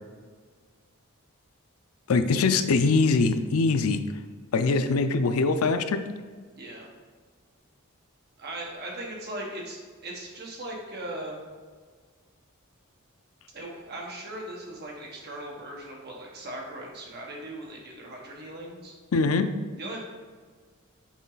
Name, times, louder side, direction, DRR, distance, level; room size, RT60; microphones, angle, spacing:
voice 1, 2.1-4.0 4.5-6.0 19.1-19.5, left 4 dB, 80° left, 9 dB, 0.5 m, -22 dB
voice 2, 6.5-6.9 8.4-11.4 13.5-18.9 19.8-20.1, right 1 dB, 50° right, -1 dB, 1.4 m, -39 dB
6.2 x 4.5 x 4.0 m, 1.6 s
head